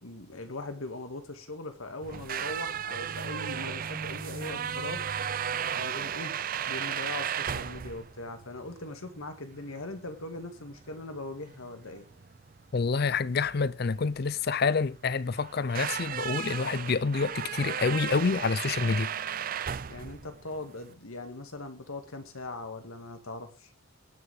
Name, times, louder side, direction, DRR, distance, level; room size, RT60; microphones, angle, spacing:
voice 1, 0.0-5.0 5.7-6.4 6.7-12.1 19.9-23.7, left 2 dB, 85° left, 2.2 m, -40 dB
sound 1, 2.0-20.9, right 8 dB, 40° right, 0.4 m, -35 dB
voice 2, 12.7-19.1, left 4 dB, 50° left, 0.5 m, -27 dB
19.0 x 6.8 x 3.5 m
head